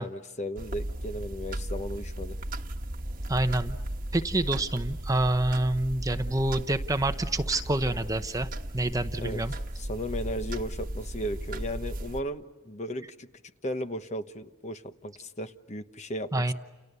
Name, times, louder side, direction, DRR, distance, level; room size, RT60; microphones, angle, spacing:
voice 1, 0.0-2.4 9.2-9.4 9.8-13.3 13.6-16.5, equal, 35° left, 9 dB, 1.1 m, -35 dB
sound 1, 0.6-12.2, right 1 dB, 45° right, 1.3 m, -36 dB
voice 2, 3.3-3.8 4.1-8.5 8.7-9.5 16.3-16.5, right 1 dB, 15° right, 9 dB, 0.8 m, -27 dB
29.5 x 29.0 x 6.9 m, 1.2 s
head